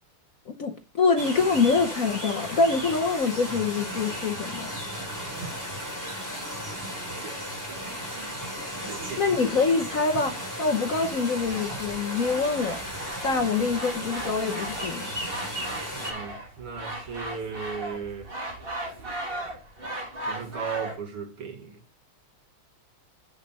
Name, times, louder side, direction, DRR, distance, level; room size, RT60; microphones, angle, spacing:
voice 1, 0.5-4.7 9.2-12.8 13.2-15.1, left 4 dB, 55° left, 1.0 m, -25 dB
sound 1, 1.2-16.1, equal, 10° right, 3.6 m, -35 dB
voice 2, 5.0-5.7 7.1-8.3 8.8-9.4 16.0-18.3 20.2-21.8, right 6 dB, 85° right, 2.6 m, -37 dB
sound 2, 11.4-20.9, right 1 dB, 25° right, 2.4 m, -37 dB
8.0 x 6.2 x 5.4 m
omnidirectional pair, 2.4 m